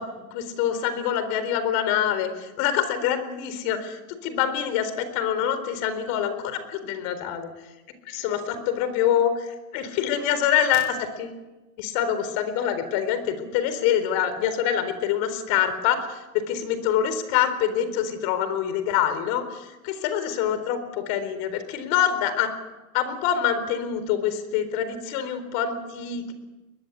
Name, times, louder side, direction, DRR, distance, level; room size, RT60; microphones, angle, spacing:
voice 1, 0.0-7.5 8.1-8.4 8.7-11.4 11.8-22.5 22.9-26.3, left 9 dB, 50° left, 11 dB, 4.2 m, -25 dB
22.0 x 21.5 x 8.3 m, 1.1 s
supercardioid pair, 155°, 40 cm